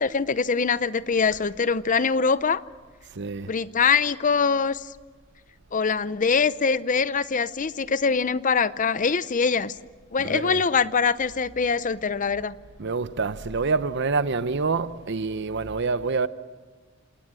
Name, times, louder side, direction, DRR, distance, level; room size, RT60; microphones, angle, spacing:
voice 1, 0.0-2.6 3.5-4.9 5.7-9.7 10.1-12.5, left 5 dB, 40° left, 0.6 m, -23 dB
voice 2, 3.1-3.5 10.2-10.6 12.8-16.3, right 4 dB, 60° right, 0.8 m, -27 dB
27.5 x 19.0 x 7.6 m
head